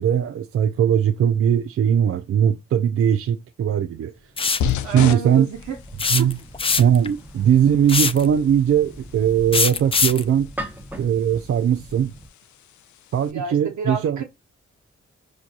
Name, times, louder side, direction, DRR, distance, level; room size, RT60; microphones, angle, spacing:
voice 1, 0.0-4.1 4.9-5.5 6.1-6.4 6.8-10.5 11.0-12.1 13.1-14.2, right 9 dB, 50° right, 0.4 m, -19 dB
sound 1, 4.4-4.7 6.0-7.1 7.9-8.3 9.5-10.2, left 5 dB, 20° left, 0.4 m, -21 dB
sound 2, 4.6-13.3, left 8 dB, 75° left, 0.5 m, -35 dB
voice 2, 4.6-5.8 6.2-6.3 13.3-14.2, right 5 dB, 70° right, 1.1 m, -30 dB
sound 3, 5.5-12.3, right 1 dB, 5° right, 0.9 m, -40 dB
4.6 x 2.7 x 2.4 m
supercardioid pair, 40°, 29 cm